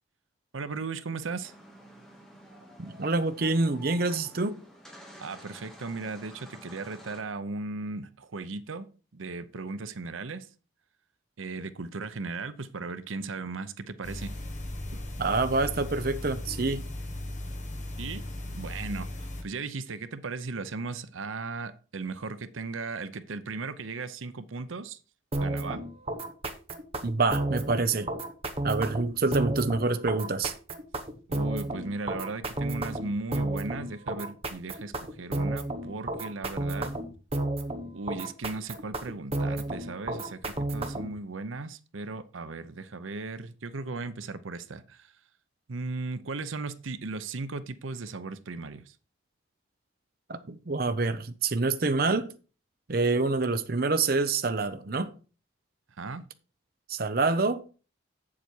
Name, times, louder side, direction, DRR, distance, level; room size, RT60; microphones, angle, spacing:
voice 1, 0.5-1.5 5.2-8.9 9.1-10.5 11.4-14.3 18.0-25.0 25.4-25.8 31.3-36.9 37.9-45.2 45.7-49.0 56.0-56.2, right 3 dB, 90° right, 0.7 m, -37 dB
sound 1, 1.4-7.2, equal, 5° left, 2.0 m, -50 dB
voice 2, 2.8-4.6 15.2-16.8 27.0-28.1 28.6-30.5 50.3-52.3 52.9-55.1 56.9-57.6, right 3 dB, 50° right, 0.6 m, -26 dB
sound 2, 14.0-19.4, left 1 dB, 35° left, 1.4 m, -37 dB
sound 3, 25.3-41.2, right 2 dB, 30° right, 1.0 m, -32 dB
8.2 x 7.4 x 4.5 m
head